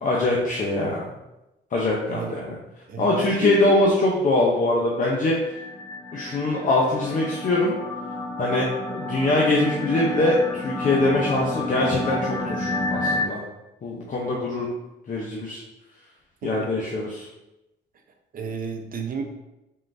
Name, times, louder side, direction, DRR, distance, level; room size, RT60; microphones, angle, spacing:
voice 1, 0.0-1.1 1.7-2.6 3.0-5.4 6.1-7.7 8.4-13.4 13.8-14.7 15.1-15.6 16.4-17.3, left 2 dB, 40° left, -3 dB, 0.7 m, -23 dB
voice 2, 2.0-2.4 2.9-3.9 16.4-16.9 18.3-19.2, right 4 dB, 45° right, 3 dB, 0.7 m, -32 dB
sound 1, 5.4-13.3, left 2 dB, 5° left, 1.2 m, -30 dB
4.3 x 3.7 x 2.6 m, 0.95 s
cardioid pair, 90°, 20 cm